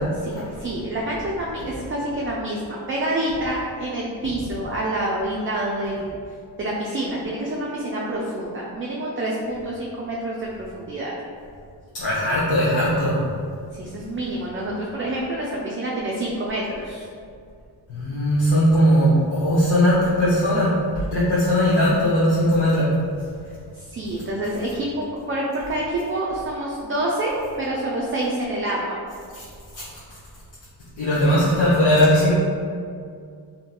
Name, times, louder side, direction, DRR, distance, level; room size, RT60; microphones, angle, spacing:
voice 1, 0.2-6.2 6.6-11.1 13.7-17.1 23.7-29.0, right 1 dB, 25° right, -4 dB, 0.4 m, -27 dB
voice 2, 11.9-13.2 17.9-20.7 21.1-22.9 29.3-29.4 29.7-29.8 31.0-32.3, equal, 60° left, -10 dB, 0.9 m, -19 dB
2.8 x 2.7 x 2.2 m, 2.3 s
supercardioid pair, 45°, 50 cm